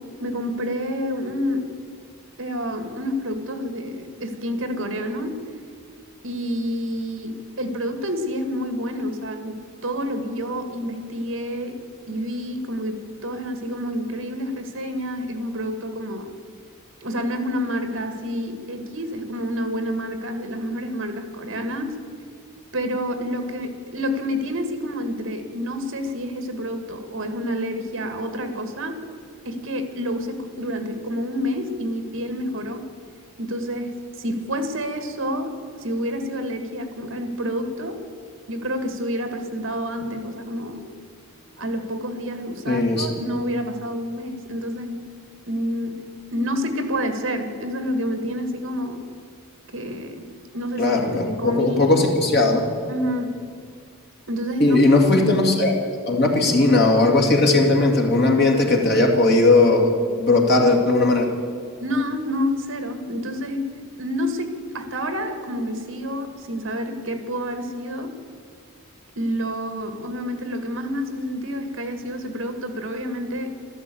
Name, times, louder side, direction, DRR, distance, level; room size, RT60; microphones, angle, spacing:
voice 1, 0.2-1.8 2.4-5.4 6.2-11.8 12.1-16.3 17.0-22.0 22.7-29.0 29.4-32.8 33.4-38.0 38.5-40.8 41.6-45.0 45.5-46.0 46.3-49.0 49.7-51.0 51.3-52.0 52.9-53.3 54.3-54.8 61.8-63.7 64.0-68.1 69.2-73.5, equal, 65° right, 7 dB, 1.7 m, -28 dB
voice 2, 42.7-43.1 50.8-52.7 54.6-55.7 56.1-59.9 60.2-61.3, left 2 dB, 50° left, 1 dB, 2.3 m, -18 dB
13.5 x 12.5 x 8.5 m, 2.2 s
head